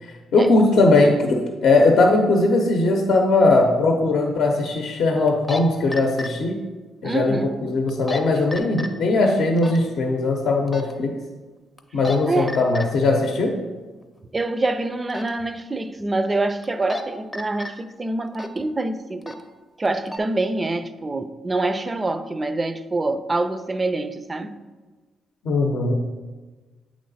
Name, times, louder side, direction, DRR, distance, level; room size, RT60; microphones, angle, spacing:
voice 1, 0.3-6.6 7.0-11.1 11.9-13.5 25.4-25.9, left 2 dB, 65° left, 0.7 m, -19 dB
sound 1, 3.2-3.3 5.3-5.6 5.9-6.3 7.9-8.2 8.5-8.9 9.6-9.8 10.7-10.9 11.8-12.2 12.5-12.8 15.1-15.3 16.6-17.0 17.3-17.7 18.3-18.6 19.2-19.4 19.8-20.2, left 2 dB, 20° left, 0.6 m, -30 dB
voice 2, 7.0-7.5 12.3-12.6 14.3-19.4 19.8-24.6, right 2 dB, 25° right, 0.4 m, -25 dB
8.2 x 3.1 x 4.0 m
cardioid pair, 90°, 0 cm